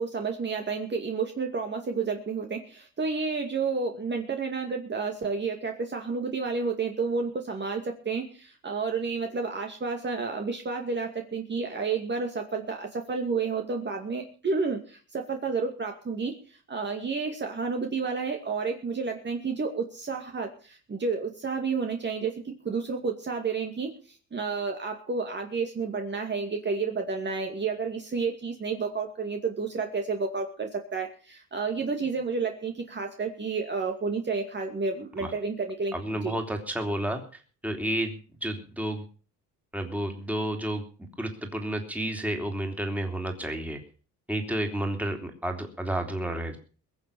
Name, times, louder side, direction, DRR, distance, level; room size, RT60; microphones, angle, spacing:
voice 1, 0.0-16.4 16.7-35.9 36.2-36.4, right 4 dB, 30° right, 3 dB, 2.4 m, -30 dB
voice 2, 35.9-37.2 37.6-39.1 39.7-40.8 41.2-43.8 44.3-46.6, right 1 dB, 5° right, 4 dB, 3.5 m, -31 dB
22.0 x 7.3 x 7.0 m, 0.40 s
cardioid pair, 110°, 35 cm